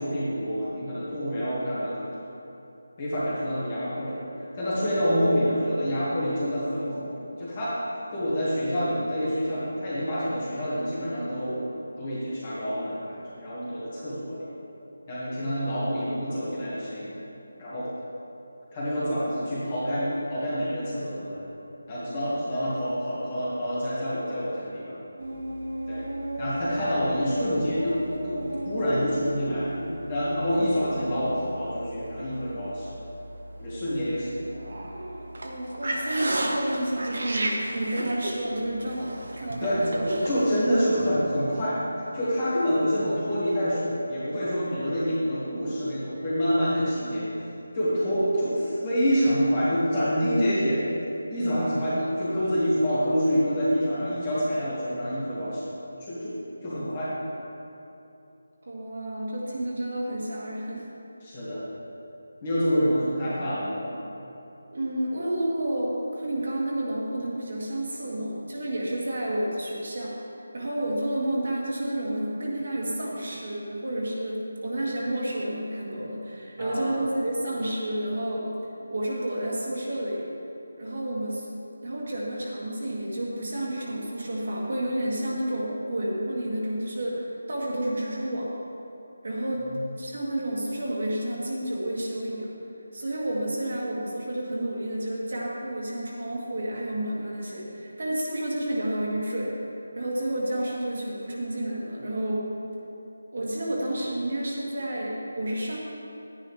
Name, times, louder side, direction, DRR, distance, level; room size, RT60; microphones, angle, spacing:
voice 1, 0.0-2.1 3.0-7.8 8.1-11.6 12.0-14.5 15.1-17.1 17.6-17.9 18.7-21.4 21.9-25.0 25.9-26.0 26.4-29.7 30.1-33.0 33.6-34.4 39.6-39.9 40.2-41.8 42.1-47.3 47.7-50.8 51.3-55.7 56.0-56.3 56.6-57.1 61.2-61.7 62.4-64.0 76.6-77.0 89.7-89.8, equal, 15° left, -9 dB, 1.8 m, -27 dB
sound 1, 25.2-40.6, right 1 dB, 65° right, 1.4 m, -34 dB
voice 2, 35.4-40.0 58.6-60.9 64.7-70.1 70.5-78.5 78.9-80.3 80.8-81.5 81.8-88.5 89.2-89.7 90.0-92.5 92.9-99.5 99.9-102.5 103.3-105.8, right 1 dB, 45° right, -4 dB, 2.0 m, -30 dB
12.0 x 10.0 x 3.3 m, 2.8 s
figure-of-eight pair, 180°, 0 cm